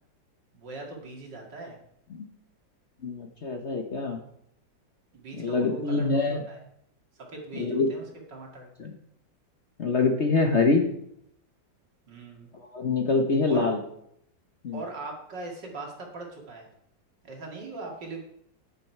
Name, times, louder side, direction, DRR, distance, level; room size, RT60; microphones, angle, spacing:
voice 1, 0.5-1.8 5.1-6.6 7.3-8.7 12.1-12.5 13.5-13.7 14.7-16.7 17.2-18.2, right 3 dB, 65° right, 0 dB, 2.9 m, -40 dB
voice 2, 3.0-4.2 5.4-6.4 7.6-7.9 8.8-8.9 9.8-10.8 12.7-13.8 14.6-14.8, left 3 dB, 45° left, 4 dB, 1.1 m, -25 dB
10.5 x 9.8 x 4.6 m, 0.73 s
omnidirectional pair, 2.0 m